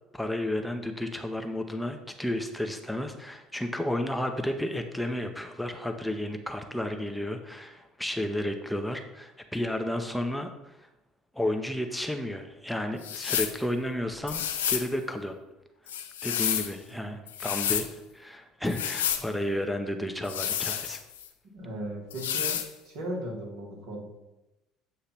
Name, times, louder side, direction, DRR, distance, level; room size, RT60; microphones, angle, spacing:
voice 1, 0.1-10.9 11.3-15.4 16.2-21.0, left 1 dB, 5° left, 5 dB, 0.7 m, -32 dB
sound 1, 13.0-13.6 14.3-14.9 15.9-16.7 17.3-17.9 18.7-19.3 20.2-21.3 22.1-22.7, left 9 dB, 85° left, 0.5 m, -30 dB
voice 2, 16.9-17.2 21.5-22.6 22.8-24.0, right 1 dB, 70° right, -2 dB, 1.9 m, -37 dB
8.2 x 2.8 x 5.8 m, 0.99 s
hypercardioid pair, 65°, 0 cm